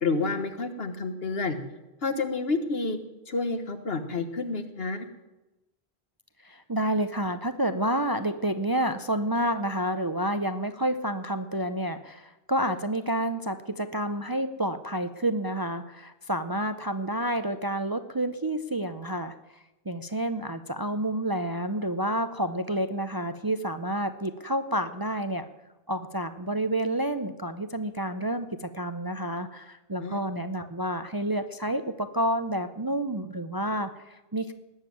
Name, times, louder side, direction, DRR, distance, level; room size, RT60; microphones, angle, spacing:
voice 1, 0.0-1.6 2.0-3.0 3.3-5.1 30.0-30.2, left 3 dB, 65° left, 8 dB, 1.6 m, -29 dB
voice 2, 6.4-25.5 25.9-34.5, right 1 dB, 25° right, 9 dB, 0.6 m, -29 dB
19.5 x 7.4 x 9.3 m, 1.0 s
omnidirectional pair, 1.1 m